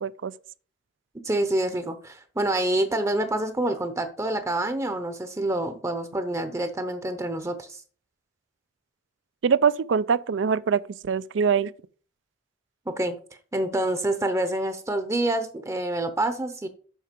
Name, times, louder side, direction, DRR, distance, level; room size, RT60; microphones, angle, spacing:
voice 1, 0.0-0.3 9.4-11.7, right 6 dB, 70° right, 0.4 m, -23 dB
voice 2, 1.2-7.8 12.9-13.2 13.5-16.7, right 1 dB, 15° right, 0.7 m, -27 dB
7.4 x 5.9 x 5.1 m
head